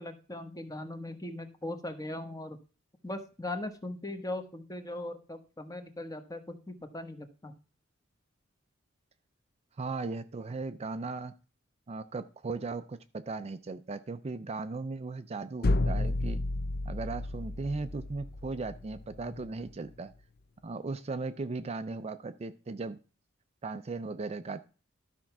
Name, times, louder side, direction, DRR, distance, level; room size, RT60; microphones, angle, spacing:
voice 1, 0.0-2.6 3.0-7.5, left 1 dB, 20° left, 7 dB, 1.1 m, -39 dB
voice 2, 9.8-11.3 11.9-16.4 16.8-20.1 20.6-23.0 23.6-24.7, right 3 dB, 30° right, 10 dB, 0.4 m, -37 dB
sound 1, 15.6-19.5, left 2 dB, 50° left, 0.6 m, -32 dB
12.5 x 4.5 x 5.9 m, 0.36 s
head